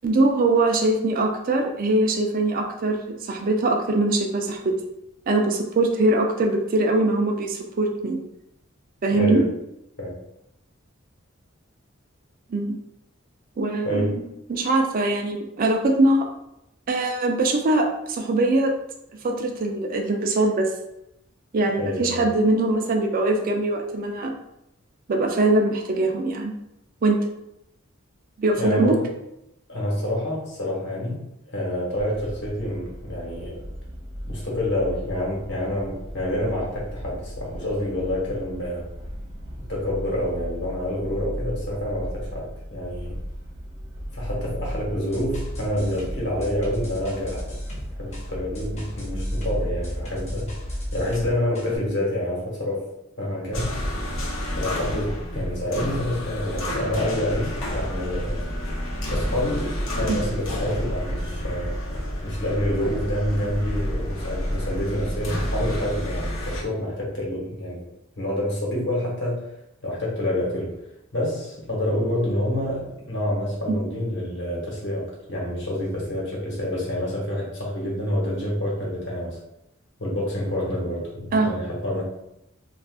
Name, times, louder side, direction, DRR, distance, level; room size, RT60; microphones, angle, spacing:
voice 1, 0.0-3.0 3.2-4.7 5.3-8.2 9.0-9.4 12.5-12.8 13.6-14.2 14.5-16.3 16.9-18.7 19.2-20.7 21.5-24.3 25.1-26.5 27.0-27.2 28.4-28.9 60.1-60.2 81.3-81.5, right 2 dB, 45° right, 2 dB, 0.4 m, -22 dB
voice 2, 9.1-9.5 10.0-10.2 13.8-14.3 21.8-22.3 28.6-29.1 29.7-31.2 31.5-33.6 34.3-38.9 39.6-43.2 44.1-47.4 48.0-50.5 50.9-52.8 53.2-53.8 54.6-58.4 59.1-61.7 62.2-67.9 68.2-69.5 69.8-70.8 71.1-79.4 80.0-82.0, left 1 dB, 60° left, -4 dB, 1.1 m, -27 dB
sound 1, 31.9-51.3, equal, 65° right, 0.8 m, -35 dB
sound 2, 44.9-51.8, equal, 35° left, 0.8 m, -39 dB
sound 3, 53.5-66.6, equal, 90° left, 0.8 m, -29 dB
2.4 x 2.4 x 3.5 m, 0.84 s
head